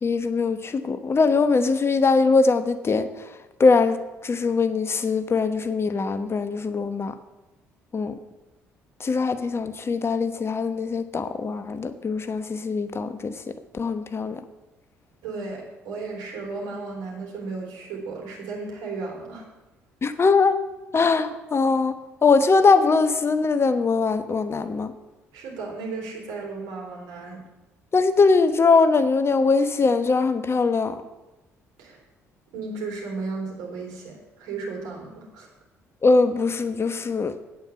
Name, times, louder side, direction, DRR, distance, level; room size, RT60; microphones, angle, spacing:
voice 1, 0.0-3.1 3.6-4.0 4.2-7.1 7.9-8.2 9.0-13.3 13.7-14.4 20.0-20.6 20.9-21.9 22.2-24.9 27.9-31.0 36.0-37.3, left 4 dB, 35° left, 10 dB, 1.0 m, -21 dB
voice 2, 15.2-19.4 25.3-27.4 31.8-32.0 32.5-35.5, right 4 dB, 65° right, -1 dB, 3.7 m, -34 dB
9.2 x 8.9 x 7.0 m, 1.0 s
hypercardioid pair, 50°, 7 cm